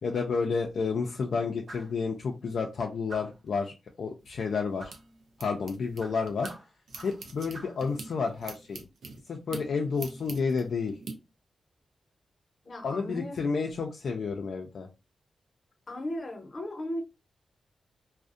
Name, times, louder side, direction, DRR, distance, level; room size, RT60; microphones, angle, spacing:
voice 1, 0.0-4.9 5.4-6.5 7.0-8.8 9.3-11.0 12.8-14.9, left 5 dB, 75° left, 0.3 m, -30 dB
sound 1, 1.7-2.0 3.1-3.5 4.8-5.0 6.0-7.3 7.5-7.8, right 2 dB, 55° right, 0.8 m, -46 dB
sound 2, 4.2-6.6 6.9-11.1, right 3 dB, 80° right, 0.5 m, -45 dB
voice 2, 12.6-13.4 15.9-17.0, left 1 dB, 45° left, 0.7 m, -36 dB
2.5 x 2.0 x 2.4 m
wide cardioid pair, 105°, 0 cm